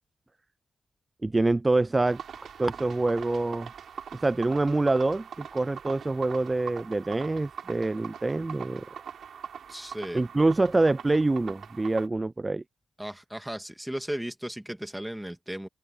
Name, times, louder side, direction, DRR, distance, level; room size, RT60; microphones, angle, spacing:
voice 1, 1.2-2.2 2.6-3.7 4.2-8.8 10.1-12.6, right 2 dB, 25° right, 0.3 m, -25 dB
sound 1, 2.0-12.1, right 8 dB, 75° right, 4.1 m, -42 dB
voice 2, 9.7-10.2 13.0-15.7, right 1 dB, 5° right, 2.0 m, -36 dB
open air
cardioid pair, 75°, 0 cm